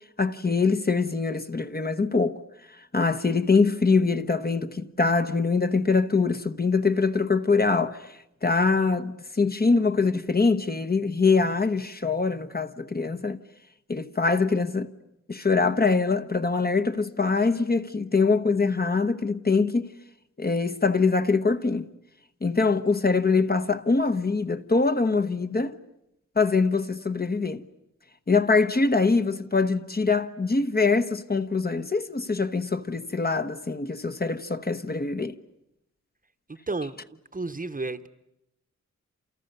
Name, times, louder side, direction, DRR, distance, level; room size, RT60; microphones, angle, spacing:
voice 1, 0.2-2.4 2.9-8.1 8.4-13.4 13.9-14.9 15.3-19.9 20.4-21.9 22.4-25.8 26.4-27.6 28.3-35.3, left 4 dB, 30° left, 1.1 m, -23 dB
voice 2, 36.5-38.1, right 3 dB, 25° right, 1.0 m, -33 dB
29.5 x 28.5 x 6.8 m
wide cardioid pair, 130°, 31 cm